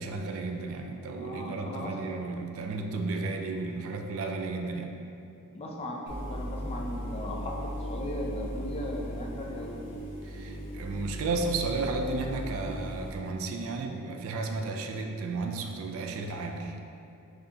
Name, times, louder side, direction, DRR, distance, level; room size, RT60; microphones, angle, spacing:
voice 1, 0.0-5.0 10.2-16.8, right 3 dB, 65° right, 4 dB, 0.3 m, -33 dB
voice 2, 1.1-2.1 5.5-9.8, left 1 dB, 25° left, 0 dB, 0.3 m, -37 dB
sound 1, 6.1-13.1, equal, 55° left, 0.7 m, -37 dB
4.2 x 2.7 x 2.8 m, 2.7 s
head